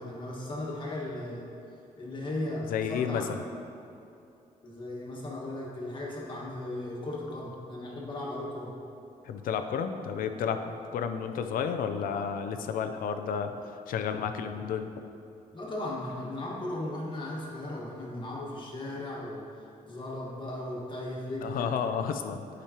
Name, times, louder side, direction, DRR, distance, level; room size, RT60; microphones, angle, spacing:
voice 1, 0.0-1.5 2.0-3.3 4.6-8.8 15.5-21.7, left 1 dB, 35° left, -4 dB, 1.5 m, -37 dB
voice 2, 2.7-3.4 9.2-13.5 13.9-14.9 21.4-22.4, left 7 dB, 80° left, 7 dB, 0.5 m, -31 dB
10.0 x 5.1 x 2.9 m, 2.7 s
cardioid pair, 115°, 14 cm